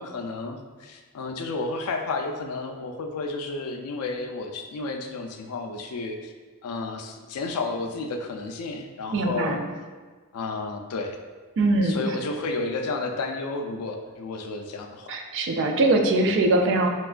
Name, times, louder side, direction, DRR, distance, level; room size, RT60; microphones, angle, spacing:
voice 1, 0.0-6.3 6.6-9.6 10.3-11.2 11.8-15.2, left 3 dB, 85° left, 4 dB, 0.4 m, -32 dB
voice 2, 9.1-9.6 11.6-12.0 15.1-16.9, right 2 dB, 60° right, 3 dB, 0.4 m, -22 dB
4.3 x 2.3 x 2.4 m, 1.4 s
head